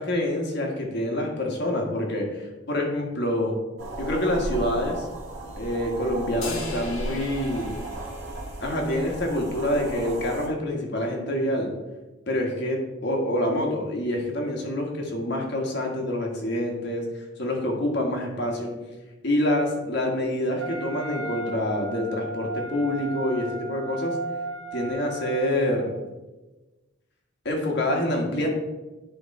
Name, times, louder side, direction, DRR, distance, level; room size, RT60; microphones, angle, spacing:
voice 1, 0.0-3.5 4.0-5.1 5.6-7.7 8.6-11.7 12.3-17.0 17.4-18.7 19.2-24.1 24.7-25.9 27.4-28.5, left 1 dB, 55° left, 1 dB, 1.5 m, -26 dB
sound 1, 3.8-10.5, right 1 dB, 90° right, 1.6 m, -35 dB
sound 2, 6.4-9.0, left 3 dB, 80° left, 1.5 m, -39 dB
Wind instrument woodwind instrument, 20.6-25.9, right 2 dB, 70° right, 2.2 m, -35 dB
10.5 x 3.5 x 4.3 m, 1.1 s
head